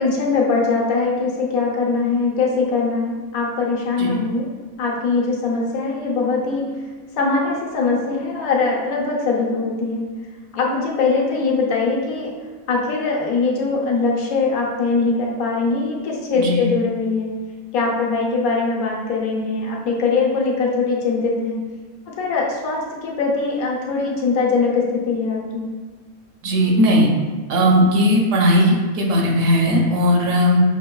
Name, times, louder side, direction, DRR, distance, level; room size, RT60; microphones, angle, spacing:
voice 1, 0.0-4.5 4.8-6.7 7.2-10.2 10.5-12.3 12.7-17.3 17.7-21.6 22.1-25.7, left 4 dB, 85° left, -2 dB, 1.1 m, -21 dB
voice 2, 26.4-27.1 27.5-30.6, equal, 70° right, 0 dB, 0.9 m, -17 dB
5.2 x 2.2 x 2.2 m, 1.4 s
omnidirectional pair, 1.5 m